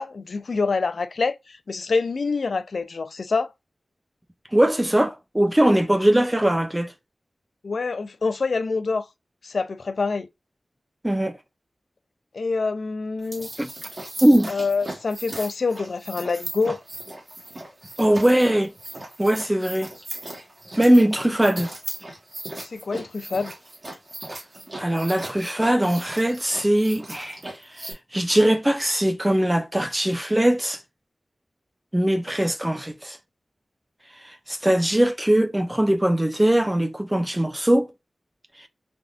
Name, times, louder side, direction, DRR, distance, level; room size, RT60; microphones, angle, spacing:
voice 1, 0.0-3.5 7.6-9.1 9.4-10.3 12.3-13.5 14.5-16.8 22.7-23.5, left 4 dB, 70° left, 0.3 m, -26 dB
voice 2, 4.5-6.9 11.0-11.4 13.6-13.7 14.2-14.5 18.0-18.7 19.2-19.9 20.8-21.7 24.8-27.4 27.7-30.8 31.9-33.2 34.2-37.9 38.6-38.7, right 1 dB, 15° right, 0.4 m, -21 dB
sound 1, 13.2-27.9, right 1 dB, 35° right, 1.2 m, -38 dB
3.4 x 2.4 x 2.3 m
wide cardioid pair, 90°, 0 cm